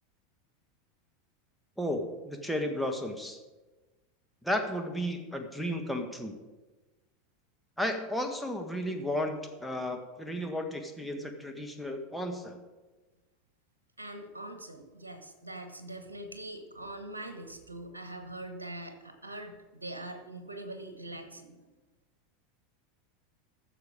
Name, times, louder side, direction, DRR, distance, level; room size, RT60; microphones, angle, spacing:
voice 1, 1.8-3.4 4.4-6.4 7.8-12.6, left 1 dB, ahead, 2 dB, 1.5 m, -33 dB
voice 2, 14.0-21.7, right 1 dB, 85° right, 7 dB, 1.2 m, -43 dB
14.5 x 6.9 x 5.1 m, 1.2 s
figure-of-eight pair, 85°, 0 cm